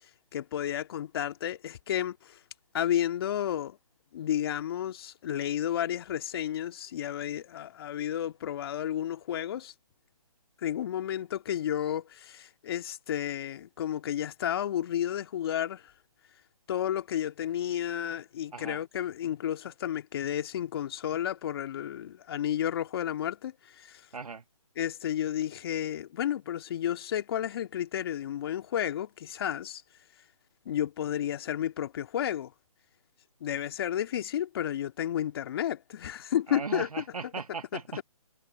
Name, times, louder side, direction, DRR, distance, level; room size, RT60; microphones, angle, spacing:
voice 1, 0.3-2.4 2.7-3.8 4.1-9.7 10.6-15.8 16.7-24.0 24.8-29.8 30.7-32.5 33.4-36.9, left 10 dB, 40° left, 2.1 m, -32 dB
voice 2, 24.1-24.4 36.5-38.0, right 5 dB, 75° right, 1.6 m, -38 dB
figure-of-eight pair, 145°, 19 cm